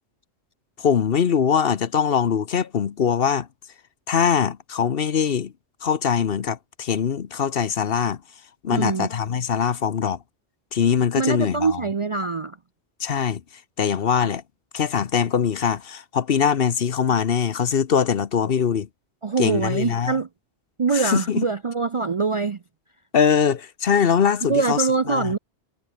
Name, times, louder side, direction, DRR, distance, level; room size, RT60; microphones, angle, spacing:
voice 1, 0.8-3.5 4.1-5.5 5.8-8.2 8.6-10.2 10.7-11.8 13.0-13.4 13.8-14.4 14.7-18.9 19.4-20.2 20.9-21.4 23.1-24.8 25.1-25.3, left 7 dB, 60° left, 1.1 m, -22 dB
voice 2, 8.7-9.1 11.1-12.6 14.2-14.3 19.2-20.3 20.8-22.6 24.4-25.4, right 4 dB, 40° right, 0.5 m, -24 dB
omnidirectional pair, 1.1 m